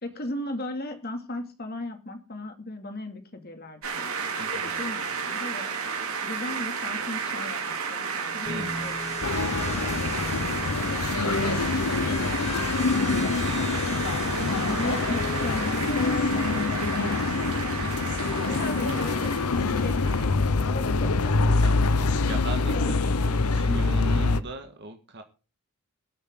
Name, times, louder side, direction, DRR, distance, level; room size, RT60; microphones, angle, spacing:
voice 1, 0.0-4.3 4.6-5.7 6.2-10.2 11.5-13.8 14.7-18.0 18.5-19.3 19.7-20.3 20.6-21.6 22.2-22.4 22.7-23.6, left 1 dB, 45° left, 6 dB, 2.5 m, -38 dB
sound 1, 3.8-20.5, right 5 dB, 75° right, 3.9 m, -33 dB
voice 2, 4.4-4.8 8.5-8.9 14.3-14.7 17.8-18.3 21.6-25.2, right 1 dB, 50° right, 5 dB, 1.7 m, -38 dB
sound 2, 8.5-15.9, left 4 dB, 30° left, 1.4 m, -41 dB
sound 3, 9.2-24.4, left 3 dB, 85° left, 0.9 m, -25 dB
21.5 x 8.4 x 3.8 m, 0.34 s
head